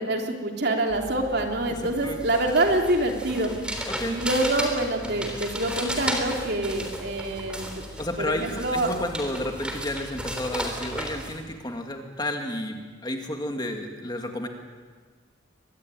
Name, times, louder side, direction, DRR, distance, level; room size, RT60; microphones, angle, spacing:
voice 1, 0.0-3.5 4.0-7.8 8.2-8.9, right 1 dB, 55° right, 2 dB, 3.3 m, -26 dB
sound 1, 0.9-11.3, equal, 5° right, 3.5 m, -34 dB
voice 2, 1.7-2.2 3.9-4.2 5.0-5.2 8.0-14.5, left 1 dB, 20° left, 3 dB, 2.4 m, -32 dB
23.5 x 21.5 x 9.3 m, 1.5 s
head